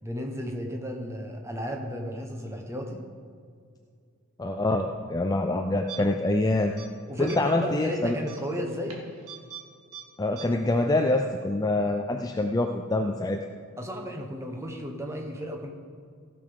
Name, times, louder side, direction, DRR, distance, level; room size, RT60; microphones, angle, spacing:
voice 1, 0.0-3.0 7.1-9.0 13.8-15.7, equal, 15° right, 2 dB, 1.2 m, -34 dB
voice 2, 4.4-6.7 7.2-8.2 10.2-13.4, left 2 dB, 15° left, 4 dB, 0.4 m, -25 dB
sound 1, 5.9-6.4 6.7-6.9 7.3-7.6 8.2-9.6 9.9-10.0 10.4-10.5, right 8 dB, 85° right, 1.9 m, -43 dB
15.5 x 6.8 x 5.4 m, 2.2 s
head